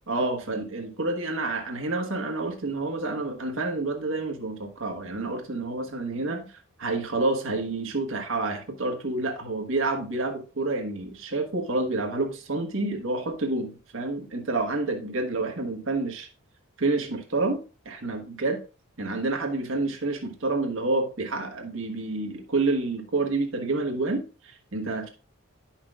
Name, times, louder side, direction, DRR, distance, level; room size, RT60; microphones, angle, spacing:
voice 1, 0.1-6.5 6.8-16.3 16.8-18.6 19.0-25.1, right 2 dB, 65° right, 3 dB, 1.4 m, -28 dB
10.5 x 5.9 x 2.4 m, 0.33 s
head